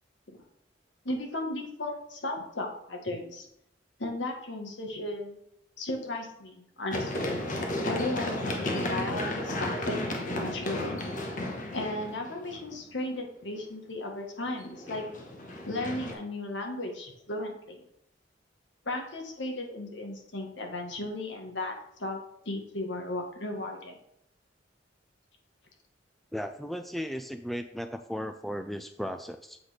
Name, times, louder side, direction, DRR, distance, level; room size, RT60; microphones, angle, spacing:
voice 1, 1.0-3.4 4.0-5.4 5.8-7.4 7.8-11.0 11.7-15.0 15.7-17.8 18.8-21.7 22.0-22.2 22.4-24.0, left 2 dB, 70° left, 2 dB, 1.6 m, -35 dB
Run, 6.9-12.8 14.6-16.1, left 1 dB, 45° left, 1.2 m, -33 dB
voice 2, 26.3-29.6, equal, ahead, 7 dB, 0.3 m, -36 dB
7.9 x 4.0 x 5.0 m, 0.75 s
head